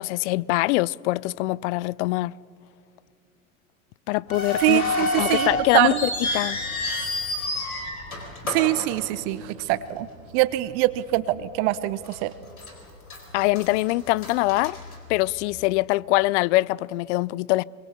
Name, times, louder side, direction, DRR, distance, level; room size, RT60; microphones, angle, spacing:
voice 1, 0.0-2.3 4.1-4.9 5.2-6.6 13.3-14.8 15.1-17.6, left 20 dB, 55° left, 0.5 m, -23 dB
sound 1, 4.3-9.6 9.9-10.0 10.7-11.0 11.4-11.5 12.1-12.7 13.1-15.5, left 2 dB, 90° left, 4.3 m, -29 dB
voice 2, 4.6-6.1 8.5-10.1 10.3-12.3, right 17 dB, 55° right, 0.9 m, -23 dB
24.5 x 23.0 x 7.0 m
hypercardioid pair, 90°, 42 cm